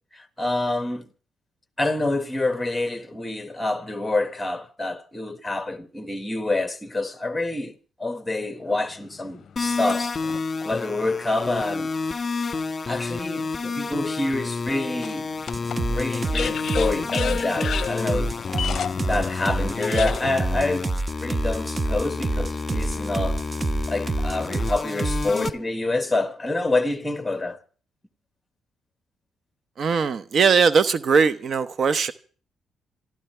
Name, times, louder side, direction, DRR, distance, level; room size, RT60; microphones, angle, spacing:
voice 1, 0.1-1.1 1.8-10.2 10.6-11.9 12.9-15.3 15.9-18.4 19.1-20.9 21.2-23.4 23.9-27.6, left 2 dB, 10° left, 1.6 m, -27 dB
sound 1, 8.7-10.4 11.1-11.2 15.0-20.3, left 7 dB, 55° left, 0.7 m, -32 dB
sound 2, 9.6-25.5, left 4 dB, 30° left, 1.6 m, -30 dB
sound 3, 15.5-25.5, right 3 dB, 25° right, 0.6 m, -27 dB
voice 2, 29.8-32.1, right 5 dB, 50° right, 0.9 m, -20 dB
26.5 x 12.5 x 3.4 m
cardioid pair, 90°, 0 cm